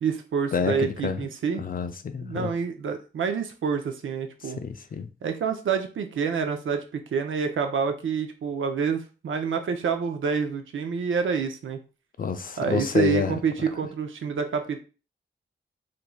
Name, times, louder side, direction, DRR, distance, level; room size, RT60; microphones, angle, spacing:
voice 1, 0.0-1.6 2.2-4.6 5.2-11.8 12.6-14.8, right 6 dB, 80° right, 0.5 m, -27 dB
voice 2, 0.5-1.3 1.6-2.5 4.4-5.1 12.2-13.4, left 6 dB, 45° left, 0.4 m, -28 dB
3.1 x 2.6 x 2.2 m
wide cardioid pair, 85°, 20 cm